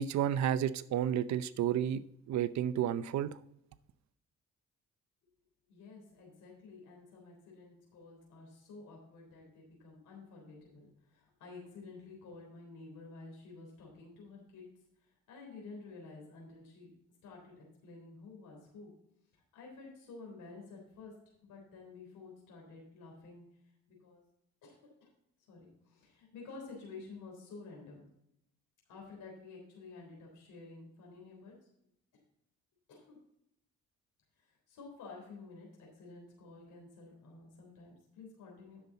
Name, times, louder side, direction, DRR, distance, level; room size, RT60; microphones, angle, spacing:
voice 1, 0.0-3.4, right 10 dB, 65° right, 14 dB, 0.7 m, -31 dB
voice 2, 5.7-14.7 15.0-16.9 17.2-18.9 19.3-21.1 21.4-23.4 23.9-24.2 24.6-25.1 25.5-28.0 28.9-31.5 32.9-33.2 34.4-38.8, left 3 dB, 80° left, -1 dB, 3.6 m, -51 dB
10.5 x 7.0 x 4.0 m, 0.77 s
cardioid pair, 90°, 30 cm